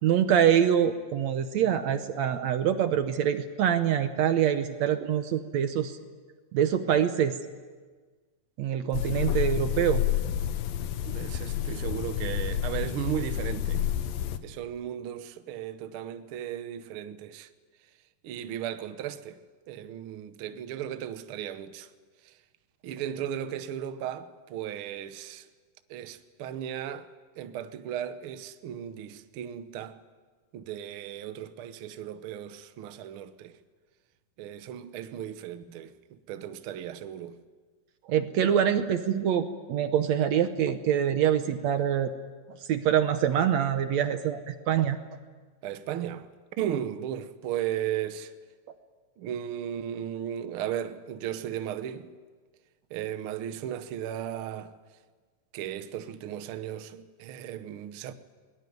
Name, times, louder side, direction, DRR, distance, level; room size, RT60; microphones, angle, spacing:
voice 1, 0.0-6.0 6.5-7.3 8.6-10.0 38.1-42.1 42.7-45.0, right 9 dB, 70° right, 1.8 m, -25 dB
sound 1, 8.9-14.4, left 10 dB, 85° left, 2.8 m, -29 dB
voice 2, 11.1-13.8 14.4-17.5 18.2-19.4 19.7-21.9 22.2-22.3 22.8-25.5 25.9-27.1 27.4-30.0 30.5-33.5 34.4-37.4 45.6-46.3 46.6-48.3 49.2-52.1 52.9-54.7 55.5-58.1, right 10 dB, 85° right, 1.2 m, -36 dB
21.5 x 20.0 x 9.4 m
omnidirectional pair, 3.9 m